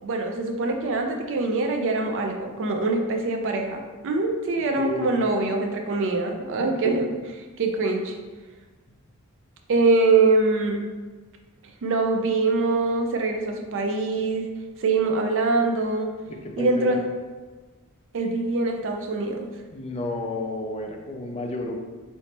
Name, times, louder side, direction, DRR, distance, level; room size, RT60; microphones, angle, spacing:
voice 1, 0.0-7.1 7.6-8.2 9.7-10.8 11.8-14.5 14.8-16.1 16.6-17.0 18.1-19.5, right 3 dB, 60° right, 4 dB, 0.4 m, -23 dB
voice 2, 4.8-5.1 6.6-7.0 16.4-17.0 19.7-21.8, left 1 dB, 30° left, 2 dB, 0.4 m, -31 dB
3.0 x 2.7 x 3.3 m, 1.3 s
head